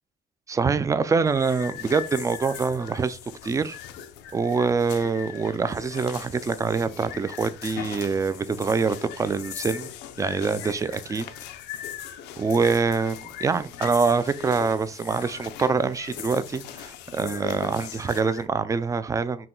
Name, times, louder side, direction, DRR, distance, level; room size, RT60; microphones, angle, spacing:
voice 1, 0.5-3.8 4.3-9.9 10.2-11.3 12.4-19.5, right 4 dB, 20° right, 0.3 m, -25 dB
sound 1, 1.3-18.5, left 10 dB, 90° left, 0.5 m, -40 dB
5.8 x 2.2 x 3.7 m
cardioid pair, 110°, 17 cm